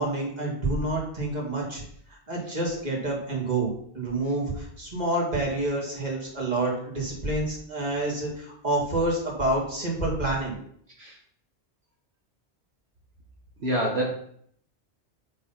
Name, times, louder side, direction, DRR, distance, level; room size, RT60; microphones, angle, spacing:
voice 1, 0.0-1.8 2.1-10.5, right 2 dB, 40° right, -3 dB, 2.5 m, -28 dB
voice 2, 13.6-14.1, right 1 dB, 70° right, -3 dB, 1.5 m, -26 dB
8.0 x 4.1 x 5.6 m, 0.66 s
omnidirectional pair, 1.1 m